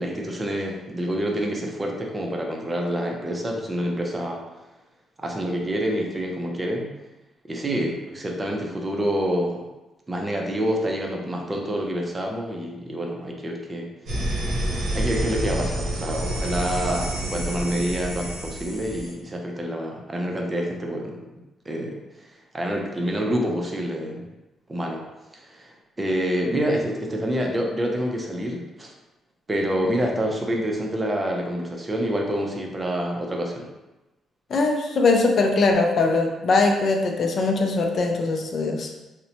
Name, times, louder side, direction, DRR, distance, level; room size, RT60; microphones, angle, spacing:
voice 1, 0.0-4.4 5.2-6.9 7.5-9.6 10.1-13.9 14.9-21.2 21.7-22.3 22.5-24.3 24.7-25.0 25.3-28.9 29.5-33.7, equal, 20° right, 1 dB, 0.5 m, -27 dB
sound 1, 14.1-19.1, right 1 dB, 75° right, 0.7 m, -28 dB
voice 2, 34.5-38.9, left 3 dB, 55° left, 3 dB, 0.3 m, -21 dB
2.8 x 2.0 x 2.7 m, 1.0 s
cardioid pair, 90°, 0 cm